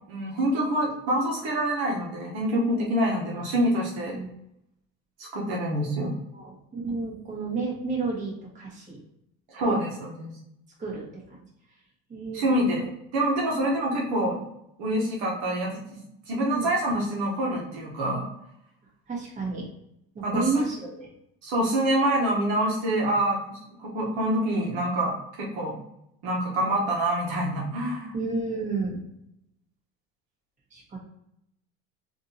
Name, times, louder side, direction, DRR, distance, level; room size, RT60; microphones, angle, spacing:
voice 1, 0.1-4.2 5.2-6.2 9.5-10.3 12.3-14.4 14.8-18.3 20.2-20.7 21.4-25.7 26.2-28.1, right 1 dB, 70° right, -3 dB, 1.1 m, -26 dB
voice 2, 6.3-9.0 9.6-9.8 10.8-11.4 12.1-12.9 16.5-16.7 19.1-19.7 20.1-21.1 28.1-29.0 30.7-31.0, right 4 dB, 25° right, -5 dB, 1.5 m, -31 dB
3.5 x 2.7 x 2.8 m, 0.78 s
supercardioid pair, 125°, 29 cm